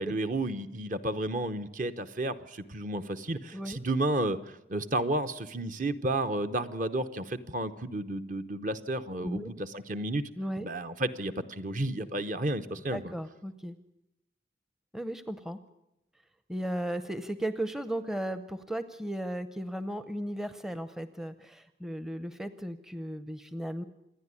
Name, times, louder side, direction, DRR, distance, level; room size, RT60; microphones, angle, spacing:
voice 1, 0.0-10.2 10.6-13.1, right 1 dB, 40° right, 9 dB, 0.9 m, -32 dB
voice 2, 9.2-9.5 10.4-10.7 12.9-13.8 14.9-15.6 16.5-23.8, right 1 dB, ahead, 11 dB, 0.6 m, -35 dB
27.5 x 10.5 x 9.8 m, 0.87 s
head